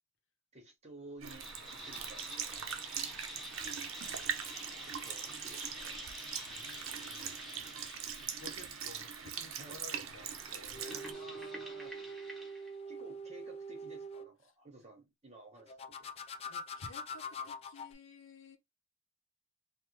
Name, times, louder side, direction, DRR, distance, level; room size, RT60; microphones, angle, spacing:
voice 1, 0.5-2.8 4.8-6.2 9.4-9.8 11.1-12.0 12.9-16.1, right 2 dB, 35° right, 1.0 m, -54 dB
sound 1, 1.2-12.7, equal, ahead, 1.0 m, -48 dB
Sink (filling or washing) / Liquid, 1.2-11.1, right 8 dB, 80° right, 0.6 m, -42 dB
voice 2, 6.5-7.7 8.4-11.4 16.5-18.6, left 4 dB, 65° left, 0.7 m, -54 dB
sound 2, 10.5-14.3 15.7-17.9, equal, 30° left, 0.3 m, -44 dB
3.3 x 2.2 x 3.1 m
head